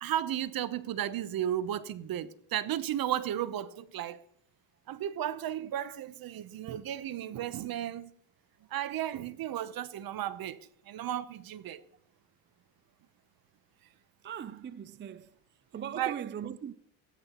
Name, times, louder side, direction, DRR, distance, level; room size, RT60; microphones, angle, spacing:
voice 1, 0.0-4.2 4.9-8.1 8.7-11.8 16.0-16.1, right 11 dB, 50° right, 0.9 m, -34 dB
voice 2, 14.2-15.4 15.7-16.7, right 8 dB, 25° right, 0.5 m, -39 dB
19.0 x 14.5 x 3.0 m
cardioid pair, 110°, 44 cm